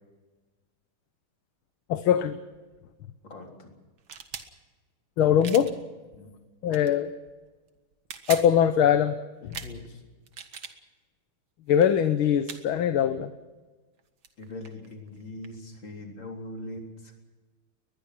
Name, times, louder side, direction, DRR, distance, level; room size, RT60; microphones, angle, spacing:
voice 1, 1.9-2.4 5.2-5.7 6.6-7.1 8.3-9.1 9.4-9.6 11.7-13.3, left 9 dB, 75° left, 9 dB, 1.8 m, -22 dB
voice 2, 3.2-3.7 5.2-5.5 6.1-6.3 9.6-10.0 14.4-17.1, left 1 dB, 60° left, 1 dB, 4.5 m, -41 dB
sound 1, 4.0-4.5 5.4-5.7 6.7-6.9 7.9-8.5 9.5-9.7 10.2-10.7 11.7-11.9 12.5-12.6 14.0-14.1 14.2-15.5, right 7 dB, 65° right, 2.3 m, -39 dB
22.5 x 21.0 x 6.0 m, 1.2 s
omnidirectional pair, 2.3 m